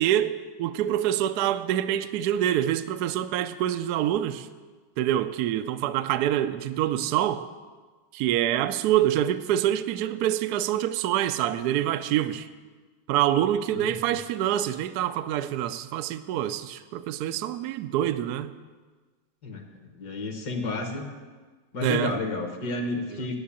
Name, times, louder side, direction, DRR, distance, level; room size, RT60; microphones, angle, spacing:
voice 1, 0.0-4.5 5.0-7.5 8.1-12.5 13.1-18.5 21.8-22.2 23.1-23.2, right 11 dB, 75° right, 0.9 m, -26 dB
voice 2, 20.0-21.1 21.7-23.4, left 3 dB, 55° left, 1.8 m, -31 dB
10.5 x 7.7 x 8.4 m
omnidirectional pair, 2.1 m